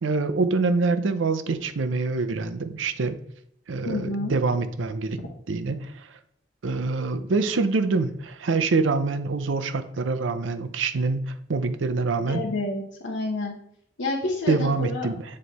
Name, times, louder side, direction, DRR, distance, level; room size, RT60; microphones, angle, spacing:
voice 1, 0.0-3.2 3.7-5.2 5.5-5.9 6.6-12.4 14.5-15.2, right 3 dB, 80° right, 10 dB, 0.5 m, -25 dB
voice 2, 3.8-4.3 12.3-13.5 14.0-15.1, left 2 dB, 80° left, -4 dB, 1.0 m, -29 dB
7.7 x 3.2 x 4.0 m, 0.69 s
head